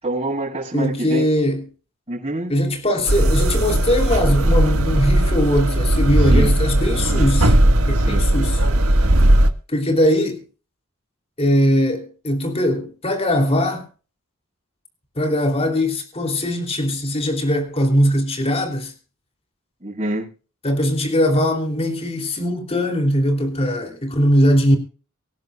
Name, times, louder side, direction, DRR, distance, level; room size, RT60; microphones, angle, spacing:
voice 1, 0.0-1.3 2.1-2.6 6.0-6.5 7.9-8.3 19.8-20.3, right 1 dB, 30° right, 7.4 m, -26 dB
voice 2, 0.7-1.6 2.5-7.6 7.8-8.6 9.7-10.4 11.4-13.9 15.2-18.9 20.6-24.8, equal, 30° left, 3.1 m, -20 dB
sound 1, 3.1-9.5, right 1 dB, 85° right, 1.6 m, -17 dB
25.0 x 11.0 x 2.4 m
head